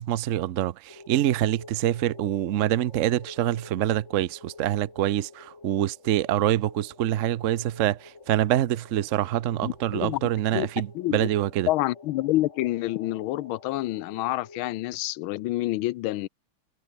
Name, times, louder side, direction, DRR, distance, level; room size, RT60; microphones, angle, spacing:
voice 1, 0.0-11.7, right 12 dB, 75° right, 0.7 m, -25 dB
sound 1, 0.9-14.6, left 3 dB, 35° left, 3.2 m, -49 dB
voice 2, 9.6-10.2 10.5-10.7 10.9-11.3 11.7-16.3, left 16 dB, 85° left, 1.5 m, -28 dB
omnidirectional pair, 2.2 m